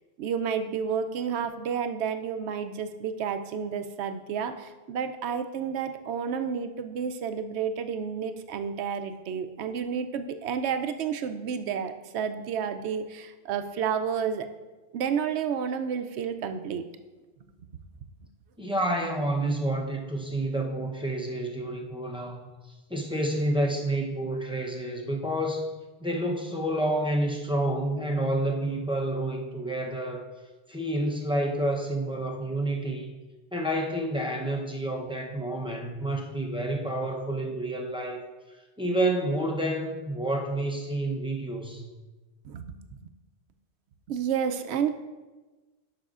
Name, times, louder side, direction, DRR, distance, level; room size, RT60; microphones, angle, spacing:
voice 1, 0.2-14.5 14.9-16.8 42.4-43.0 44.1-45.0, right 7 dB, 75° right, 8 dB, 0.8 m, -30 dB
voice 2, 18.6-22.5 22.9-25.7 26.0-30.2 30.7-33.1 33.5-38.2 38.8-41.8, right 1 dB, 5° right, 0 dB, 0.5 m, -29 dB
12.0 x 6.0 x 2.4 m, 1.2 s
omnidirectional pair, 1.2 m